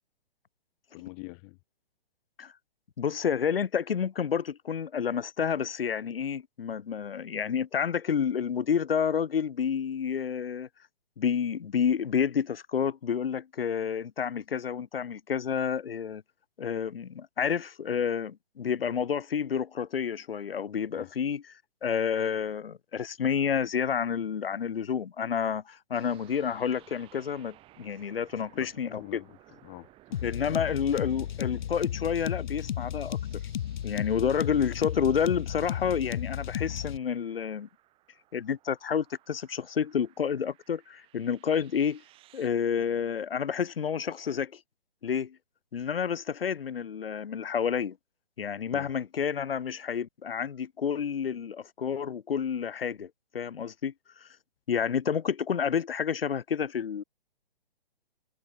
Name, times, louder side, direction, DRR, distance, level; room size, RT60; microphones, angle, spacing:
voice 1, 0.9-1.6 20.9-21.1 28.5-30.6 34.2-34.4 48.7-48.9, left 40 dB or more, 20° left, 0.7 m, -45 dB
voice 2, 3.0-10.7 11.2-16.2 16.6-21.4 21.8-29.2 30.2-33.2 33.8-37.7 38.3-42.0 42.3-44.6 45.0-45.4 45.7-48.0 48.4-53.9 54.2-54.3 54.7-57.0, left 7 dB, 75° left, 1.8 m, -29 dB
sound 1, 25.9-42.5, right 15 dB, 20° right, 3.3 m, -59 dB
sound 2, 30.1-37.0, left 10 dB, 55° left, 0.6 m, -34 dB
hypercardioid pair, 155°, 29 cm